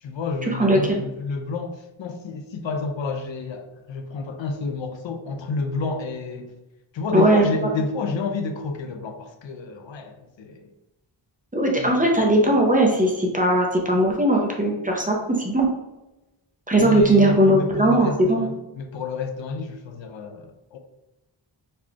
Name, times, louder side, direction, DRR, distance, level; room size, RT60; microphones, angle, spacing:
voice 1, 0.0-6.6 6.9-10.7 11.8-12.1 16.8-20.8, left 4 dB, 70° left, 5 dB, 0.5 m, -30 dB
voice 2, 0.6-1.0 7.1-7.6 11.5-15.2 15.4-15.7 16.7-18.4, right 1 dB, 15° right, -1 dB, 0.6 m, -19 dB
4.1 x 3.1 x 2.2 m, 0.99 s
wide cardioid pair, 110°, 48 cm